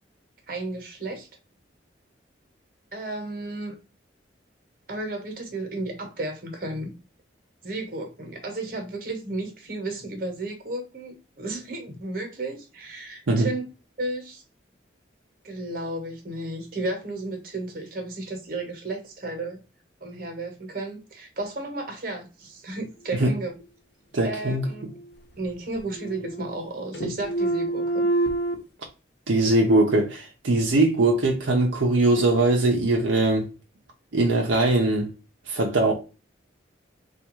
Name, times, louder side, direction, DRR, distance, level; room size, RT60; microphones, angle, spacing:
voice 1, 0.5-1.3 2.9-3.7 4.9-6.9 7.6-13.7 14.0-14.4 15.4-19.6 20.0-23.5 24.2-24.9 25.4-28.1, right 2 dB, 50° right, 1.1 m, -33 dB
voice 2, 24.1-24.6 29.3-33.5 34.1-35.1 35.5-35.9, right 2 dB, 80° right, 0.7 m, -21 dB
sound 1, 24.5-25.4 25.7-26.7 26.9-28.6, right 2 dB, 60° left, 0.9 m, -27 dB
3.5 x 2.4 x 2.9 m
head